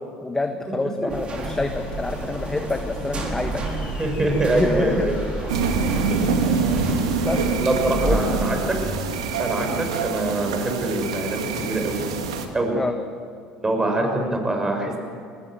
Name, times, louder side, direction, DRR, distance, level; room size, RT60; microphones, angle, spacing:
voice 1, 0.2-3.6 4.5-5.0 5.7-6.0 7.2-7.5 8.0-8.2 9.7-9.8 12.7-12.9 14.2-14.4, left 2 dB, 15° left, 5 dB, 1.5 m, -27 dB
sound 1, 1.1-9.0, right 2 dB, 35° right, 5.0 m, -30 dB
sound 2, 1.7-9.1, left 7 dB, 55° left, 3.5 m, -39 dB
voice 2, 4.0-5.2 6.1-6.6 7.6-8.8 9.4-12.0 12.5-12.7 13.6-15.0, right 2 dB, 20° right, 3 dB, 6.4 m, -24 dB
sound 3, 5.5-12.5, right 5 dB, 90° right, 2.0 m, -25 dB
22.0 x 19.5 x 7.9 m, 2.4 s
hypercardioid pair, 75°, 3 cm